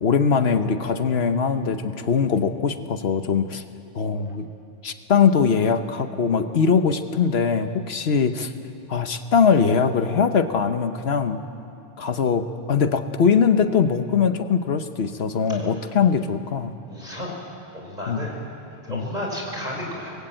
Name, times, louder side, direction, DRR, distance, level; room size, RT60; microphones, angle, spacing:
voice 1, 0.0-3.6 3.9-4.5 4.8-8.5 8.9-11.4 12.0-16.8 18.1-18.3 18.9-19.0, left 6 dB, 75° left, 9 dB, 1.2 m, -21 dB
voice 2, 16.9-17.4 17.7-18.3 18.8-20.1, left 1 dB, 40° right, -1 dB, 5.4 m, -32 dB
24.0 x 20.0 x 9.0 m, 2.7 s
omnidirectional pair, 1.1 m